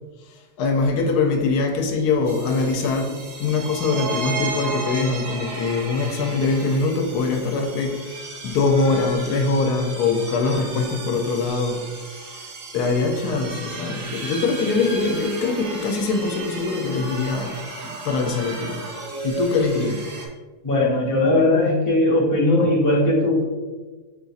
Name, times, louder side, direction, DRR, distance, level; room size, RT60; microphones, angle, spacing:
voice 1, 0.6-8.2 8.4-11.9 12.2-12.5 12.7-17.6 17.8-18.8 19.2-20.1, left 3 dB, 75° left, 1.1 m, -23 dB
sound 1, 2.3-20.3, right 3 dB, 50° right, 0.7 m, -34 dB
voice 2, 20.6-23.4, left 2 dB, 15° left, 0.7 m, -19 dB
5.1 x 2.4 x 3.9 m
omnidirectional pair, 1.7 m